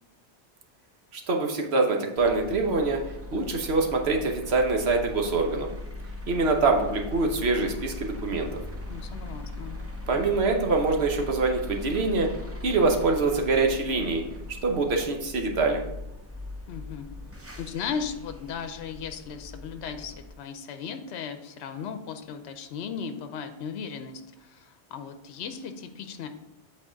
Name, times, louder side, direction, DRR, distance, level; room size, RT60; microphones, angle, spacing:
voice 1, 1.1-3.0 3.3-5.7 6.3-8.5 10.1-12.3 12.6-14.2 14.6-15.8, right 3 dB, 70° right, 2 dB, 1.1 m, -24 dB
sound 1, 2.2-20.3, left 2 dB, 15° right, 0.6 m, -39 dB
voice 2, 8.9-9.8 16.7-17.1 17.6-26.3, left 6 dB, 75° left, 8 dB, 0.9 m, -36 dB
8.6 x 4.1 x 3.9 m, 0.89 s
omnidirectional pair, 1.1 m